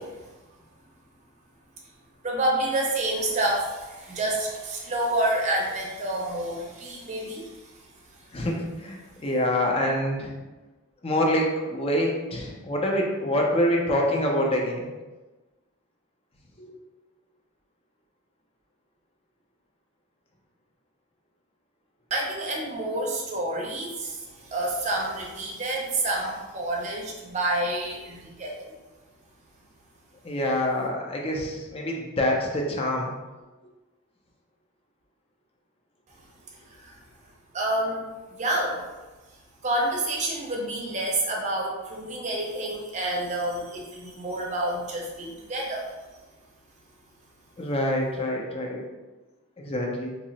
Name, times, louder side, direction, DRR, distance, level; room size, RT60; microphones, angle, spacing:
voice 1, 2.2-8.3 22.1-28.7 36.4-37.0 37.5-38.0 38.3-38.8 39.6-45.9, right 1 dB, 35° right, -2 dB, 0.6 m, -29 dB
voice 2, 8.3-10.4 11.0-14.9 16.6-16.8 30.2-33.1 47.6-48.8 49.6-50.1, left 1 dB, 25° left, -1 dB, 0.5 m, -26 dB
2.8 x 2.0 x 3.9 m, 1.2 s
head